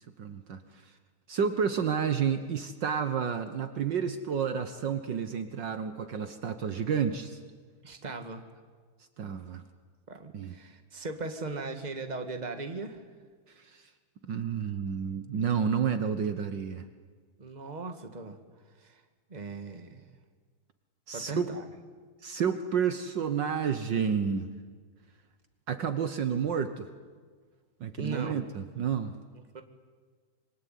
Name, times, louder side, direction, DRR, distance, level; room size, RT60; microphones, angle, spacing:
voice 1, 0.2-0.9 1.3-7.4 9.2-9.6 10.3-10.5 13.5-13.8 14.2-16.8 21.1-21.5 22.2-24.5 25.7-26.9 27.8-29.1, right 7 dB, 60° right, 9 dB, 1.7 m, -30 dB
voice 2, 7.8-8.4 10.1-13.0 17.4-18.4 18.8-19.0 19.3-20.0 21.1-21.7 28.0-28.5 29.5-29.6, right 3 dB, 20° right, 6 dB, 1.9 m, -38 dB
26.0 x 23.5 x 9.3 m, 1.5 s
omnidirectional pair, 2.3 m